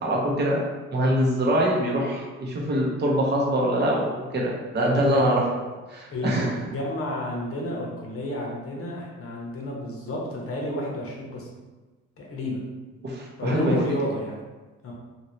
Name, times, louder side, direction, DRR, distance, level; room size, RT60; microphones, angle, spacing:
voice 1, 0.0-0.6 0.9-5.5 5.9-6.5 13.0-13.8, equal, 35° right, -2 dB, 0.7 m, -24 dB
voice 2, 6.1-11.5 12.2-12.6 13.4-14.4 14.8-14.9, left 1 dB, 50° left, -2 dB, 0.9 m, -30 dB
2.8 x 2.7 x 3.0 m, 1.2 s
cardioid pair, 90°, 30 cm